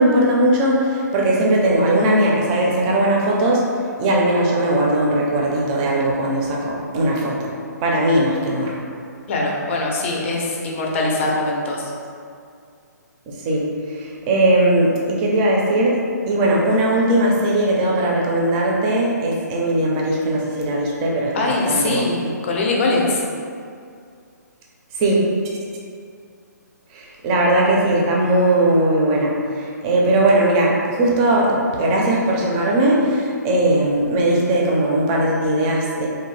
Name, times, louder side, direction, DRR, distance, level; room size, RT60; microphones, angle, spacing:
voice 1, 0.0-3.7 4.0-7.5 7.8-8.8 13.3-22.1 24.9-25.3 26.9-36.1, right 1 dB, 25° right, -3 dB, 0.4 m, -19 dB
voice 2, 9.3-11.9 21.3-23.2, left 2 dB, 40° left, -2 dB, 0.5 m, -22 dB
2.6 x 2.1 x 3.1 m, 2.3 s
hypercardioid pair, 145°, 10 cm